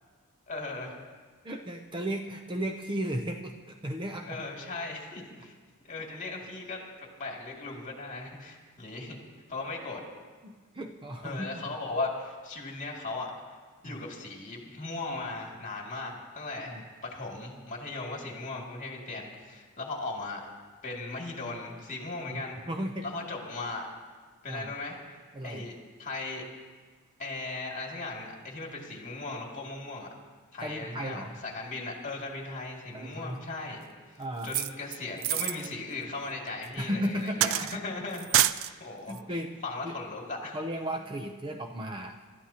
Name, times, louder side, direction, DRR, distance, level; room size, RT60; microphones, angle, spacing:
voice 1, 0.5-1.0 4.2-5.5 5.9-6.8 7.2-9.2 9.5-10.0 11.2-13.3 13.8-20.4 20.8-22.6 23.0-23.9 24.4-26.4 27.2-30.1 30.5-33.8 34.4-38.5 38.8-40.6, left 3 dB, 35° left, -1 dB, 2.5 m, -37 dB
voice 2, 1.4-4.5 10.4-11.7 13.8-14.1 16.7-16.8 22.3-23.1 24.5-24.7 25.3-25.7 30.6-31.3 32.9-33.4 34.2-34.5 36.8-37.8 39.1-40.0 40.5-42.2, equal, 20° right, 3 dB, 0.6 m, -35 dB
sound 1, 34.4-35.7 36.6-36.7 37.4-37.8 38.1-38.7 39.1-39.2, right 12 dB, 65° right, 0.4 m, -27 dB
25.5 x 13.0 x 2.9 m, 1.5 s
head